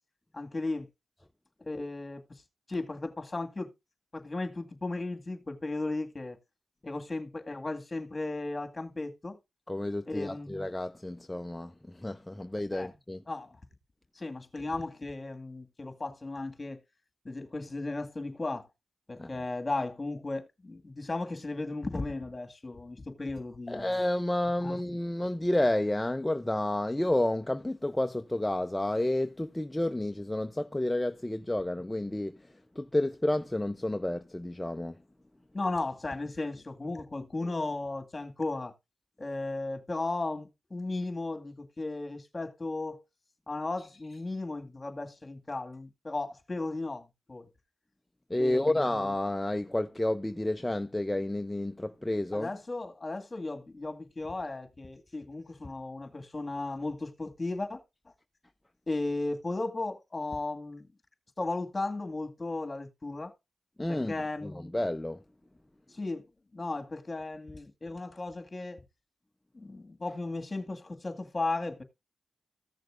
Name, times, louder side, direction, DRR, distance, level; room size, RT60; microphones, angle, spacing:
voice 1, 0.3-0.9 1.6-2.2 2.7-3.7 4.1-6.4 6.8-9.4 10.1-10.5 12.7-12.9 13.3-13.6 14.2-16.8 17.2-18.7 19.1-23.8 24.6-24.8 35.5-38.7 39.2-43.0 43.5-47.5 48.4-48.9 52.3-57.8 58.9-60.9 61.4-63.3 63.9-64.5 65.9-66.2 66.5-68.8 69.5-71.8, left 2 dB, 35° left, 2.1 m, -35 dB
voice 2, 9.7-13.2 19.2-19.3 23.7-32.5 32.8-35.0 48.3-52.5 63.8-64.1 64.4-65.2, left 1 dB, 15° left, 0.7 m, -30 dB
15.5 x 6.6 x 2.6 m
cardioid pair, 45°, 0 cm